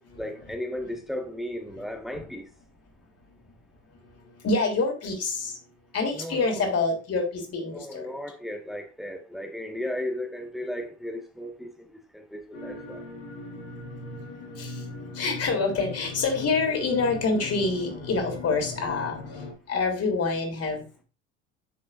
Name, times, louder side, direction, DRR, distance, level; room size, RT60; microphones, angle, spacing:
voice 1, 0.2-2.5 6.1-6.7 7.7-13.1, left 1 dB, ahead, 1.6 m, -35 dB
voice 2, 4.4-5.5 5.9-8.1 14.6-14.8 15.2-19.2 19.7-21.0, left 3 dB, 40° left, 3.4 m, -26 dB
sound 1, 12.5-19.5, left 3 dB, 75° left, 3.3 m, -39 dB
10.5 x 6.2 x 2.6 m
figure-of-eight pair, 65°, 37 cm